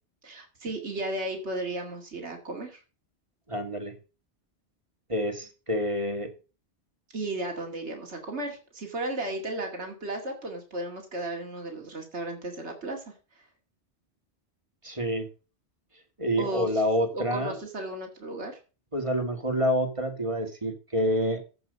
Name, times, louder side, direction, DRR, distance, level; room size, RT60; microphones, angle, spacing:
voice 1, 0.2-2.8 7.1-13.1 16.4-16.8 17.1-18.6, right 1 dB, 85° right, 2 dB, 2.5 m, -34 dB
voice 2, 3.5-4.0 5.1-6.3 14.8-15.3 16.2-17.6 18.9-21.4, equal, 30° right, 5 dB, 2.1 m, -27 dB
15.5 x 5.6 x 5.3 m, 0.34 s
omnidirectional pair, 1.1 m